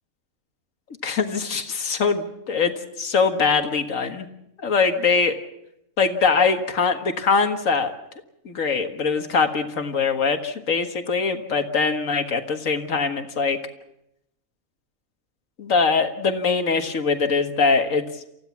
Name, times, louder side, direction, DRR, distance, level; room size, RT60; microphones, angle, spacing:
voice 1, 1.0-2.7 3.0-4.3 4.6-5.4 6.0-7.9 8.5-13.6 15.6-18.0, left 5 dB, 85° left, 6 dB, 2.0 m, -22 dB
29.0 x 15.5 x 7.2 m, 0.83 s
omnidirectional pair, 1.3 m